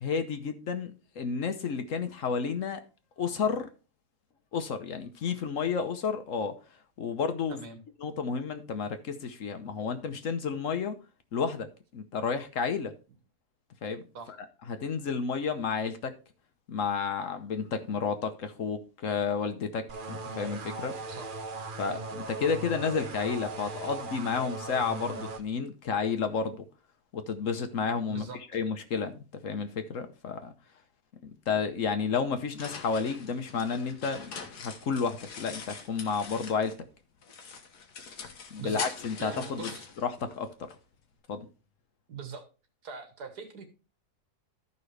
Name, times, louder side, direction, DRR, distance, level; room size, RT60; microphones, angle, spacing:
voice 1, 0.0-2.8 3.2-3.7 4.5-6.5 7.0-7.6 8.0-11.0 11.3-11.7 11.9-12.9 13.8-14.0 14.7-16.1 16.7-20.9 21.8-26.6 27.1-28.3 28.5-30.5 31.2-34.3 34.6-36.7 38.5-39.7 40.0-40.5 41.3-41.5, left 5 dB, 60° left, 8 dB, 1.2 m, -31 dB
voice 2, 7.5-7.8 14.1-14.4 21.1-21.3 28.1-28.6 38.6-38.9 39.2-39.8 40.2-40.3 42.1-42.4 42.8-43.7, right 5 dB, 90° right, 7 dB, 1.9 m, -42 dB
sound 1, 19.9-25.4, right 3 dB, 40° right, 0.8 m, -39 dB
sound 2, 32.2-36.9 37.2-40.8, left 5 dB, 85° left, 1.8 m, -43 dB
13.0 x 5.5 x 3.3 m, 0.33 s
omnidirectional pair, 1.7 m